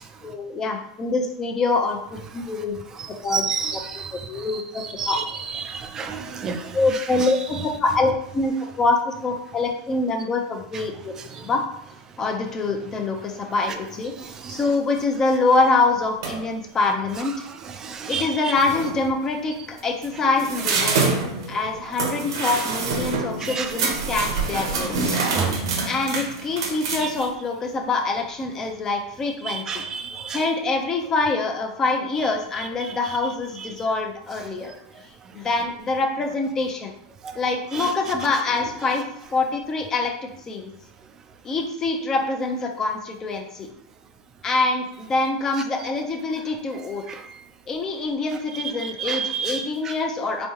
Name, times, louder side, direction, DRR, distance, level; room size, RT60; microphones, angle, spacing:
voice 1, 0.2-2.7 3.2-3.4 3.7-5.2 6.7-11.1 11.4-11.6 12.2-17.3 18.1-21.1 21.5-25.2 25.9-29.8 30.3-34.7 35.3-36.9 37.3-39.0 39.3-40.7 41.4-43.7 44.4-47.0 47.7-50.5, left 3 dB, 20° left, 2 dB, 0.7 m, -25 dB
voice 2, 3.3-4.1 5.0-5.2 5.5-6.8 11.4-11.5 14.4-14.6 17.8-18.3 23.4-23.7 25.3-25.6 27.0-27.1 29.5-30.4 37.2-37.3 37.7-37.9 47.1-47.2 48.8-49.7, right 6 dB, 25° right, 6 dB, 0.5 m, -29 dB
sound 1, 16.2-16.5 18.2-18.3 18.5-19.0 19.8-27.3, right 4 dB, 85° right, 1.0 m, -26 dB
4.5 x 3.3 x 2.9 m, 0.73 s
supercardioid pair, 140°, 2 cm